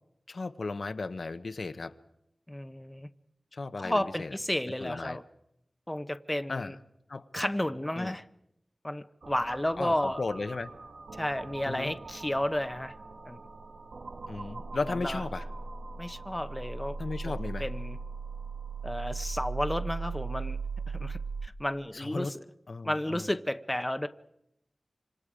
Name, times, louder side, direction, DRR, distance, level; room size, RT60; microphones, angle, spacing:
voice 1, 0.3-1.9 3.5-4.4 4.8-5.2 6.5-6.7 7.1-7.3 8.0-8.2 9.8-10.7 11.7-11.9 14.3-15.5 17.0-17.7 21.9-22.3 22.7-23.2, left 3 dB, 70° left, 0.8 m, -35 dB
voice 2, 2.5-3.1 3.8-5.2 5.9-6.8 7.3-8.2 8.8-10.2 11.2-12.9 13.2-13.4 14.9-15.2 16.0-17.0 17.2-18.0 18.8-20.6 20.9-22.4 22.8-24.1, left 1 dB, 10° left, 0.8 m, -32 dB
sound 1, 9.2-21.5, right 4 dB, 80° right, 1.3 m, -39 dB
26.5 x 26.0 x 5.0 m
wide cardioid pair, 85°, 0 cm